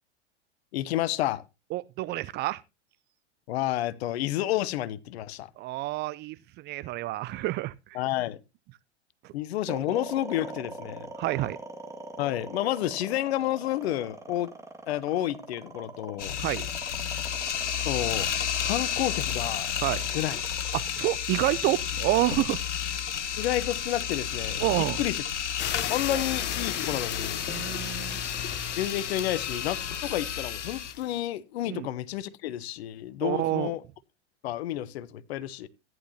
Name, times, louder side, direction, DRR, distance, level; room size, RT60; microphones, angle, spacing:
voice 1, 0.7-1.4 3.5-5.5 7.9-8.4 9.3-11.1 12.2-14.5 14.9-16.4 17.8-18.3 18.6-19.7 20.1-20.4 23.4-25.2 25.9-27.4 28.8-33.8 34.4-35.7, left 14 dB, 60° left, 1.0 m, -30 dB
voice 2, 1.7-2.6 5.6-7.7 11.2-11.6 16.4-16.7 19.8-20.1 20.7-22.6 24.6-25.0 26.1-26.2 27.5-28.2 31.7-31.9 33.2-33.7, right 17 dB, 30° right, 0.5 m, -28 dB
sound 1, 9.7-21.9, right 2 dB, 10° right, 2.0 m, -42 dB
sound 2, 16.2-30.9, left 9 dB, 90° left, 1.0 m, -32 dB
sound 3, 25.6-31.2, left 11 dB, 30° left, 1.0 m, -36 dB
14.5 x 10.5 x 2.8 m
hypercardioid pair, 100°, 35 cm